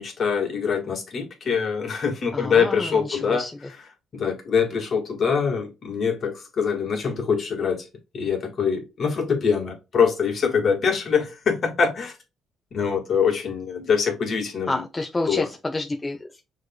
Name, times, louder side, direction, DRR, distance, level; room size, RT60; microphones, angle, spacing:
voice 1, 0.0-3.4 4.1-7.8 8.1-12.1 12.7-14.8 15.3-15.5, left 6 dB, 55° left, 1.8 m, -24 dB
voice 2, 2.3-3.7 14.7-16.4, left 2 dB, 20° left, 0.7 m, -29 dB
6.4 x 3.3 x 2.3 m
cardioid pair, 90°, 0 cm